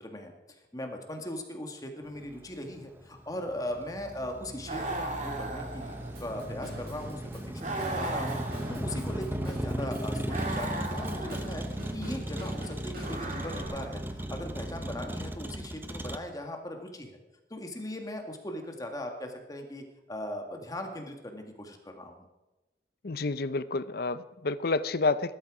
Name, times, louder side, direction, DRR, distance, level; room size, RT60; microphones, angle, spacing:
voice 1, 0.0-5.9 6.2-11.6 11.9-17.2 17.5-22.3, left 1 dB, 20° left, 4 dB, 1.9 m, -39 dB
Motor vehicle (road), 2.1-16.2, right 1 dB, 10° right, 0.9 m, -36 dB
sound 1, 4.6-6.4 7.6-9.2 10.3-11.6 13.0-14.1, right 2 dB, 45° right, 2.6 m, -37 dB
Drum kit / Drum, 6.1-13.6, right 1 dB, 60° right, 5.6 m, -47 dB
voice 2, 23.0-25.3, left 3 dB, 60° left, 15 dB, 0.7 m, -29 dB
19.5 x 12.5 x 4.9 m, 1.0 s
head